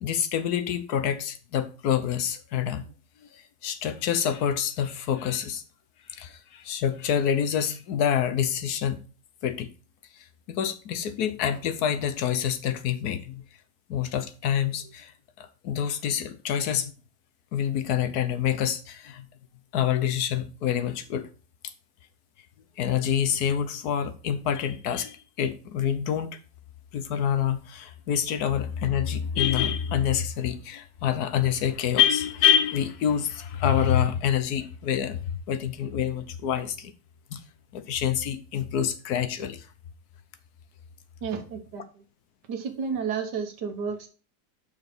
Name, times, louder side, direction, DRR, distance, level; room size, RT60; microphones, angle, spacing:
voice 1, 0.0-2.8 3.2-5.6 6.1-9.0 9.4-9.7 10.2-13.4 13.9-15.1 15.4-16.9 17.5-19.3 19.7-21.3 22.8-26.4 26.9-36.9 37.3-37.4 37.7-39.7, left 9 dB, 70° left, 1.3 m, -27 dB
voice 2, 41.2-42.0 42.5-44.1, right 6 dB, 85° right, 1.7 m, -32 dB
5.9 x 4.7 x 5.9 m
omnidirectional pair, 1.8 m